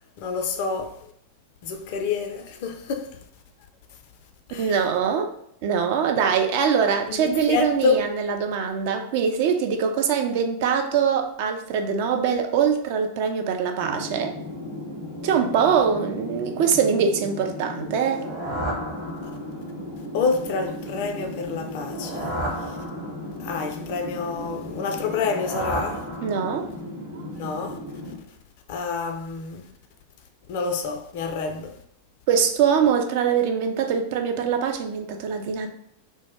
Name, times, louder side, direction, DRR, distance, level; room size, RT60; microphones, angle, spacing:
voice 1, 0.2-1.0 1.6-3.2 4.5-4.7 7.1-8.0 20.1-22.3 22.7-22.8 23.4-26.0 27.3-27.8 28.7-29.7 30.5-31.8, left 5 dB, 50° left, 0.3 m, -28 dB
voice 2, 4.6-5.3 5.6-14.3 15.2-18.2 26.2-26.7 32.3-35.7, right 7 dB, 50° right, 0.3 m, -23 dB
sound 1, 13.8-28.2, left 1 dB, 70° right, 0.9 m, -36 dB
sound 2, 17.9-19.7 21.7-23.5 25.0-26.8, right 1 dB, 25° right, 0.8 m, -33 dB
2.1 x 2.0 x 3.3 m
figure-of-eight pair, 90°, 0 cm